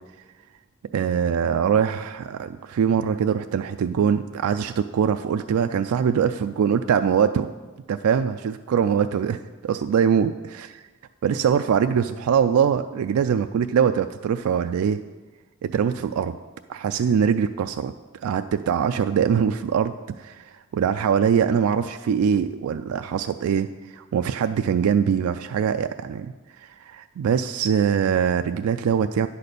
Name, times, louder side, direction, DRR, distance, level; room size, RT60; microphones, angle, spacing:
voice 1, 0.9-7.5 7.9-10.3 11.2-15.0 15.6-16.3 16.7-17.9 18.2-23.7 23.9-26.3 26.6-29.3, right 7 dB, 85° right, 8 dB, 0.3 m, -22 dB
9.8 x 4.2 x 6.7 m, 1.3 s
head